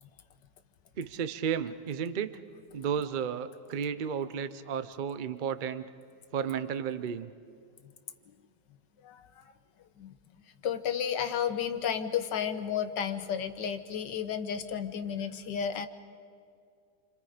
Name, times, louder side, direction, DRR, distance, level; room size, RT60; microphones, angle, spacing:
voice 1, 1.0-2.4 2.7-5.9 6.3-7.3, right 7 dB, 80° right, 13 dB, 0.4 m, -33 dB
voice 2, 9.0-9.4 10.0-10.1 10.6-15.9, left 8 dB, 75° left, 9 dB, 1.7 m, -32 dB
28.5 x 26.0 x 5.1 m, 2.3 s
omnidirectional pair, 1.9 m